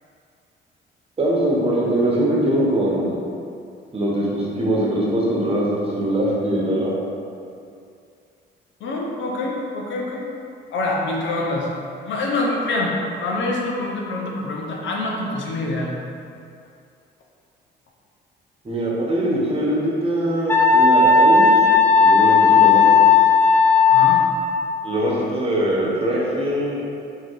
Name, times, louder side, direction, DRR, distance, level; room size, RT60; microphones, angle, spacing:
voice 1, 1.2-3.2 3.9-6.9 18.6-21.5 21.9-23.0 24.8-26.8, right 1 dB, 30° right, -5 dB, 1.1 m, -22 dB
voice 2, 8.8-10.2 10.7-11.7 12.1-13.0 13.2-15.9 23.9-24.2, left 2 dB, 75° left, -1 dB, 0.8 m, -25 dB
Wind instrument woodwind instrument, 20.5-24.6, left 5 dB, 10° left, 0.5 m, -14 dB
3.8 x 2.9 x 4.6 m, 2.4 s
cardioid pair, 90°, 20 cm